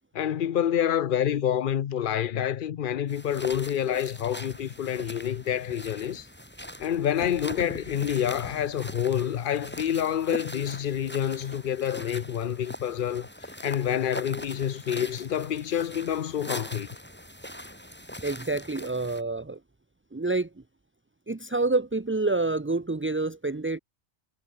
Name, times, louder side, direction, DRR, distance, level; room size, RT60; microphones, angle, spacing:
voice 1, 0.1-6.3 6.8-16.9, left 9 dB, 55° left, 0.8 m, -28 dB
sound 1, 3.1-19.2, equal, 10° left, 4.8 m, -41 dB
voice 2, 18.2-19.6 20.1-20.5 21.3-23.8, right 3 dB, 15° right, 0.5 m, -28 dB
omnidirectional pair, 1.2 m